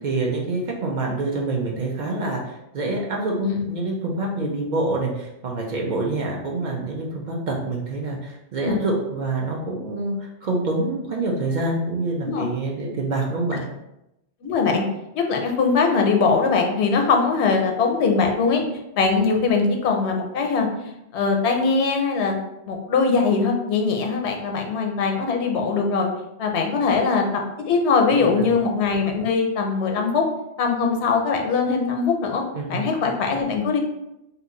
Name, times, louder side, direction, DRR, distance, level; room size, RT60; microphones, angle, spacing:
voice 1, 0.0-13.6 28.1-28.5 32.5-32.8, right 2 dB, 55° right, -1 dB, 0.6 m, -26 dB
voice 2, 14.4-14.8 15.1-20.7 21.1-22.4 22.7-26.1 26.4-27.2 27.6-30.2 30.6-32.4 32.7-33.8, left 4 dB, 90° left, 3 dB, 0.9 m, -21 dB
2.8 x 2.3 x 3.7 m, 0.88 s
omnidirectional pair, 1.1 m